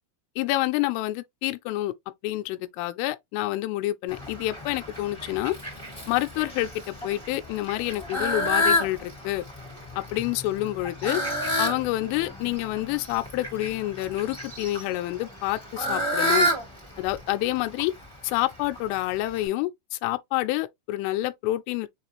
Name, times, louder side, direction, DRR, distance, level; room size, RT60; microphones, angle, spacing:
voice 1, 0.4-1.9 2.2-5.5 6.1-9.4 10.0-11.2 11.6-16.5 17.0-17.9 18.2-21.9, left 16 dB, 90° left, 3.1 m, -28 dB
Fowl, 4.1-19.5, equal, 5° left, 0.8 m, -31 dB
7.2 x 2.4 x 3.0 m
omnidirectional pair, 5.5 m